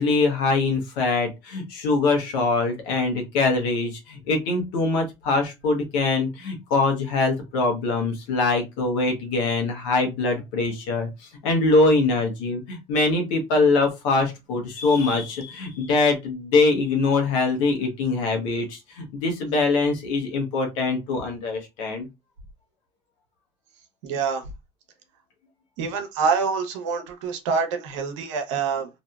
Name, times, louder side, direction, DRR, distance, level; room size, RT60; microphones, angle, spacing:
voice 1, 0.0-11.1 11.4-22.1, left 3 dB, 80° left, 1.0 m, -23 dB
voice 2, 24.0-24.4 25.8-28.9, right 5 dB, 85° right, 0.7 m, -26 dB
2.8 x 2.6 x 2.3 m
hypercardioid pair, 65°, 15 cm